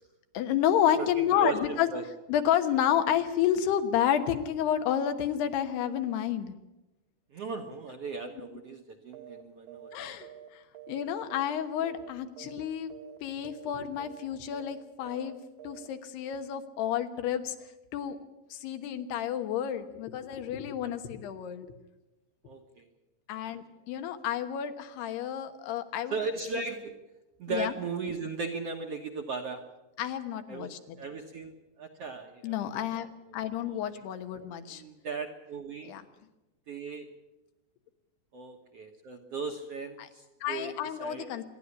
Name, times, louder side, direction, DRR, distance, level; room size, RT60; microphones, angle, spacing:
voice 1, 0.3-1.9 2.3-6.5 9.9-10.3 10.9-12.9 13.2-15.4 15.6-17.6 17.9-18.2 18.5-21.7 23.3-26.2 27.5-27.7 30.0-31.0 32.4-33.1 33.3-34.8 35.8-36.0 40.0-40.1 40.4-41.4, left 10 dB, 85° left, 7 dB, 3.3 m, -30 dB
voice 2, 1.0-2.0 7.3-10.1 22.4-22.8 26.1-26.9 27.4-29.6 30.5-30.7 31.0-31.5 31.8-32.7 33.7-33.8 34.7-35.9 36.7-37.1 38.3-41.3, right 4 dB, 60° right, 2 dB, 1.7 m, -37 dB
sound 1, 9.1-9.4 9.7-10.0 10.2-11.6 11.8-12.1 12.4-12.7 12.9-13.2 13.4-13.7 14.0-14.3 14.5-14.8 15.1-15.3 15.6-15.9, right 10 dB, 80° right, 3.5 m, -48 dB
26.0 x 11.5 x 9.8 m, 1.0 s
omnidirectional pair, 4.6 m